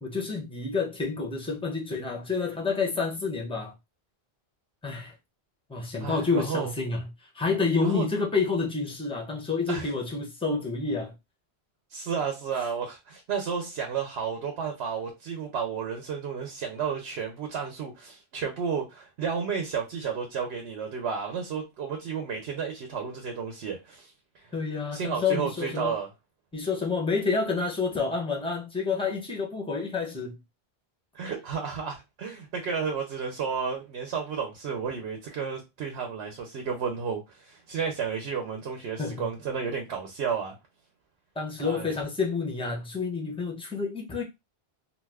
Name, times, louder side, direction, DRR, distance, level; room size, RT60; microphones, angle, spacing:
voice 1, 0.0-3.7 4.8-5.1 5.7-7.1 7.3-11.1 24.5-25.9 26.5-30.4 39.0-39.3 41.4-44.2, left 4 dB, 5° left, 0.5 m, -29 dB
voice 2, 6.0-6.7 7.8-8.1 9.7-9.9 11.9-24.5 24.9-26.1 31.1-40.6 41.6-41.9, right 6 dB, 80° right, 0.9 m, -32 dB
2.5 x 2.3 x 3.3 m
omnidirectional pair, 1.1 m